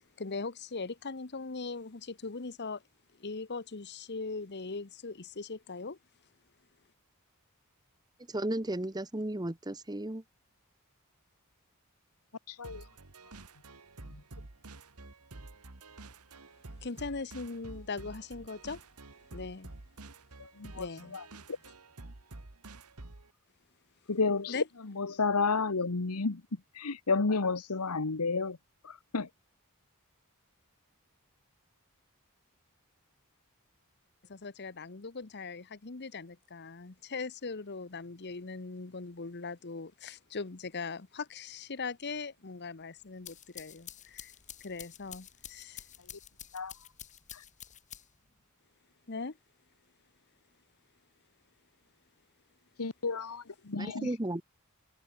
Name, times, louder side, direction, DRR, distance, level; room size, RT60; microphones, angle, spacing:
voice 1, 0.0-2.8 3.2-6.0 16.8-18.8 19.3-19.7 20.7-21.2 24.5-24.6 34.3-44.3 44.6-45.8 49.1-49.4, left 4 dB, 50° left, 1.0 m, -40 dB
voice 2, 8.3-10.2 53.8-54.4, right 1 dB, 20° right, 1.1 m, -34 dB
voice 3, 12.5-12.8 14.0-14.2 20.4-20.9 21.1-21.2 24.1-26.4 26.7-28.6 28.8-29.3 46.5-46.7 47.3-47.4 52.8-54.1, left 4 dB, 85° left, 1.2 m, -31 dB
sound 1, 12.6-23.3, right 2 dB, 90° right, 1.8 m, -49 dB
sound 2, 43.0-48.3, left 10 dB, 35° left, 1.8 m, -49 dB
head